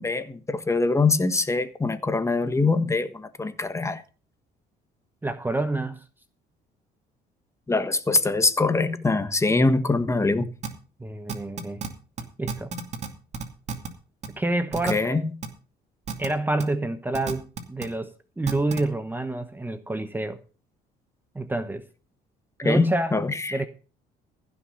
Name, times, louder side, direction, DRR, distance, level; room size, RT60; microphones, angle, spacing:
voice 1, 0.0-4.0 7.7-10.4 14.9-15.3 22.6-23.6, left 3 dB, 15° left, 1.4 m, -23 dB
voice 2, 5.2-6.0 11.0-11.8 12.4-12.7 14.3-15.3 16.2-20.4 21.3-21.8 22.6-23.2 23.5-23.7, right 2 dB, 10° right, 0.9 m, -28 dB
sound 1, 10.6-10.7 11.3-11.9 12.2-12.3 12.5-13.1 13.3-13.9 14.2-14.3 14.7-14.9 15.4-15.5 16.1-16.3 16.6-16.7 17.1-17.9 18.5-18.8, right 6 dB, 40° right, 2.4 m, -31 dB
15.5 x 6.2 x 6.8 m
cardioid pair, 110°, 17 cm